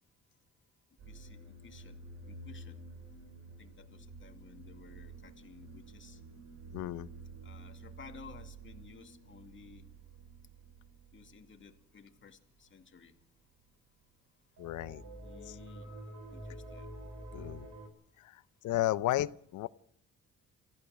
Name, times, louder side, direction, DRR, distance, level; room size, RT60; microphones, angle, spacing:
sound 1, 1.0-12.3 12.6-12.8 13.0-13.2 14.6-17.9, right 2 dB, 70° right, 6.7 m, -50 dB
voice 1, 1.1-2.8 3.6-6.2 7.4-9.9 11.1-13.2 14.8-17.5, left 6 dB, 40° left, 6 dB, 2.4 m, -55 dB
voice 2, 6.7-7.1 14.6-15.0 15.5-15.6 17.3-17.7 18.2-19.7, left 15 dB, 80° left, 17 dB, 0.8 m, -33 dB
29.5 x 15.0 x 6.4 m, 0.67 s
cardioid pair, 90°, 30 cm